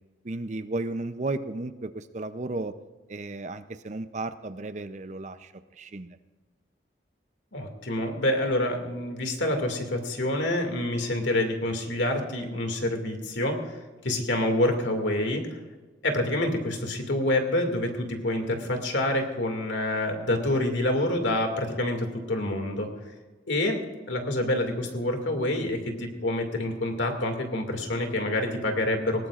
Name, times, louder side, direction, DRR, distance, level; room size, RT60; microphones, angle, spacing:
voice 1, 0.2-2.7 3.1-6.2, right 2 dB, 40° right, 11 dB, 0.6 m, -34 dB
voice 2, 7.5-15.6 16.0-22.9 23.5-23.8 24.1-29.3, left 1 dB, 90° left, 4 dB, 2.3 m, -27 dB
20.0 x 18.0 x 2.5 m, 1.3 s
head